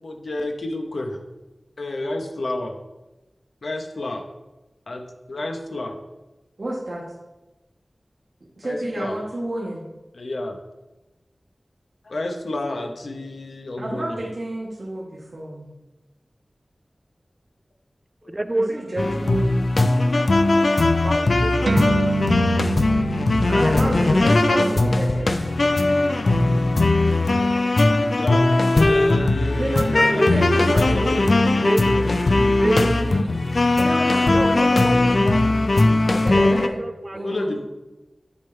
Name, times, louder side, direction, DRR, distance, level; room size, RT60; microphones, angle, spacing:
voice 1, 0.0-1.2 1.8-2.8 3.6-4.2 4.9-6.0 8.6-9.2 10.1-10.6 12.0-14.2 18.2-18.4 19.8-20.0 28.1-28.5 28.7-31.4 37.2-37.6, left 2 dB, 85° left, 4 dB, 0.9 m, -30 dB
voice 2, 6.6-7.0 8.6-9.8 13.8-15.7 18.4-19.6 23.5-25.4 29.2-32.1 32.4-33.2 33.7-35.3 35.9-36.8 37.1-37.6, right 1 dB, 65° right, -6 dB, 1.4 m, -30 dB
voice 3, 18.3-18.8 21.0-21.8 30.2-30.3 31.6-31.8 32.6-33.4 34.3-35.5 36.1-37.3, right 1 dB, 30° right, 11 dB, 0.4 m, -28 dB
sound 1, 19.0-36.7, left 2 dB, 70° left, 0.5 m, -19 dB
sound 2, 21.7-28.5, right 3 dB, 90° right, 0.8 m, -30 dB
9.8 x 3.7 x 4.4 m, 1.1 s
wide cardioid pair, 65°, 0 cm